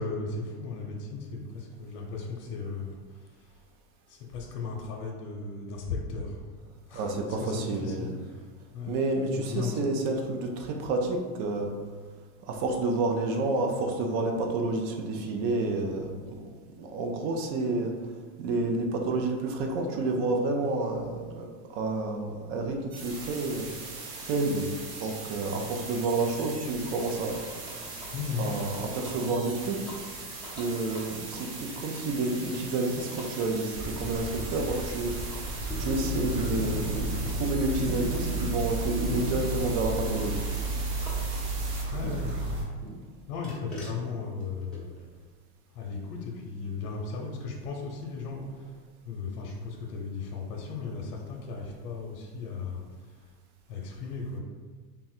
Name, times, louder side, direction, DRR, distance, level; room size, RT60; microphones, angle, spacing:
voice 1, 0.0-3.5 4.1-6.5 6.9-9.0 9.3-10.0 28.1-28.5 41.9-42.5 43.3-44.9 45.7-48.7 49.0-53.2 53.7-54.4, left 4 dB, 65° left, -1 dB, 0.8 m, -36 dB
voice 2, 6.9-8.1 8.9-11.7 12.5-16.1 16.4-16.5 16.8-17.9 18.4-23.7 24.2-24.7 25.0-27.5 28.4-29.8 30.5-35.1 35.8-40.4, right 2 dB, 45° right, 2 dB, 0.6 m, -29 dB
sound 1, 22.9-41.8, right 3 dB, 65° right, 1.1 m, -41 dB
sound 2, 26.4-42.4 42.8-45.0, equal, ahead, 0.8 m, -43 dB
sound 3, 33.7-42.6, right 2 dB, 90° right, 1.2 m, -32 dB
3.7 x 2.2 x 4.2 m, 1.5 s
supercardioid pair, 145°, 47 cm